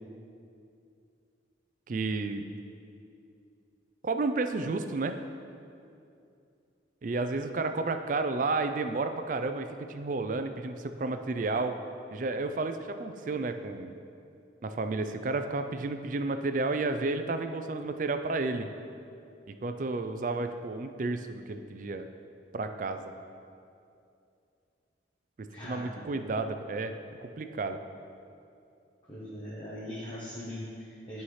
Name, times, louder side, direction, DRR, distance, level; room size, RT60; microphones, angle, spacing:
voice 1, 1.9-2.5 4.0-5.1 7.0-11.8 12.1-13.9 14.6-18.7 19.5-22.1 22.5-23.1 25.6-26.9 27.2-27.8, right 3 dB, 45° right, 8 dB, 0.4 m, -31 dB
voice 2, 25.5-26.0 29.1-31.2, equal, 25° left, -8 dB, 1.0 m, -40 dB
11.0 x 5.6 x 3.2 m, 2.5 s
head